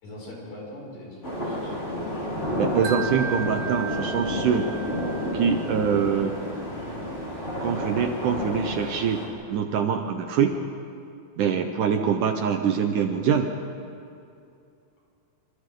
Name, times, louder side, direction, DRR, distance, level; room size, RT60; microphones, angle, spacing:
voice 1, 0.0-1.7, left 1 dB, 65° left, -4 dB, 7.7 m, -41 dB
sound 1, 1.2-9.3, left 1 dB, 15° left, 5.3 m, -30 dB
voice 2, 2.6-4.7 5.3-6.4 7.6-9.2 9.5-10.5 11.4-13.5, right 7 dB, 70° right, 5 dB, 2.2 m, -24 dB
Wind chime, 2.8-6.0, right 5 dB, 85° right, 3.2 m, -36 dB
26.5 x 26.5 x 3.8 m, 2.6 s
omnidirectional pair, 4.2 m